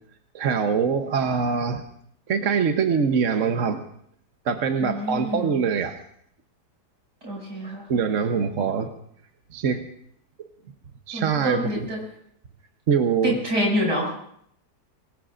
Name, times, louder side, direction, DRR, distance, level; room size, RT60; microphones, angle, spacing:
voice 1, 0.3-1.8 2.3-3.8 4.4-6.0 7.9-8.9 9.5-9.8 11.1-11.9 12.9-13.4, right 6 dB, 55° right, 6 dB, 1.2 m, -23 dB
voice 2, 4.8-5.5 7.2-7.8 11.1-12.0 13.2-14.1, equal, 70° right, -1 dB, 7.2 m, -26 dB
25.0 x 20.5 x 2.5 m, 0.68 s
omnidirectional pair, 1.8 m